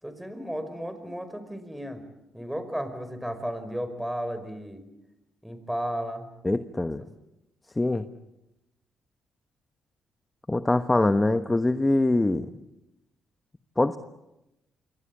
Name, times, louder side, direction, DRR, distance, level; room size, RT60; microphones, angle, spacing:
voice 1, 0.0-2.0 2.3-4.8 5.4-6.3, equal, 5° right, 11 dB, 5.3 m, -34 dB
voice 2, 6.4-7.0 7.8-8.1 10.5-12.5 13.8-14.0, left 2 dB, 15° left, 9 dB, 1.1 m, -23 dB
28.0 x 23.5 x 8.7 m, 0.92 s
cardioid pair, 90°, 0 cm